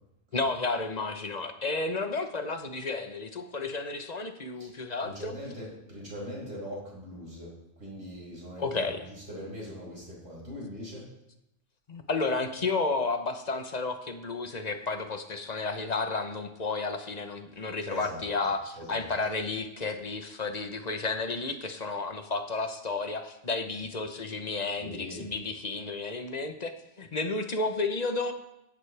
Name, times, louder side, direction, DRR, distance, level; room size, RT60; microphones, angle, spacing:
voice 1, 0.3-5.3 8.6-9.0 11.9-28.3, left 3 dB, 40° left, 7 dB, 1.0 m, -32 dB
voice 2, 4.6-7.5 7.8-11.1 17.9-18.2 18.8-19.1 24.8-25.3, equal, 85° right, -5 dB, 5.9 m, -41 dB
16.0 x 11.5 x 3.4 m, 0.88 s
omnidirectional pair, 1.2 m